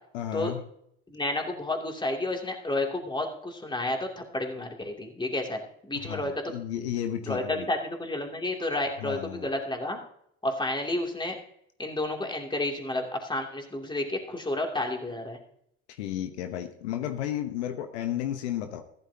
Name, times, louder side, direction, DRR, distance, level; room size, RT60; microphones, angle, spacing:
voice 1, 0.1-0.6 5.9-7.7 9.0-9.5 16.0-18.8, left 11 dB, 80° left, 8 dB, 1.0 m, -33 dB
voice 2, 1.1-6.6 7.3-10.0 10.4-11.4 11.8-15.4, left 1 dB, 15° left, 1 dB, 2.7 m, -31 dB
14.5 x 12.0 x 2.8 m, 0.71 s
hypercardioid pair, 65°, 33 cm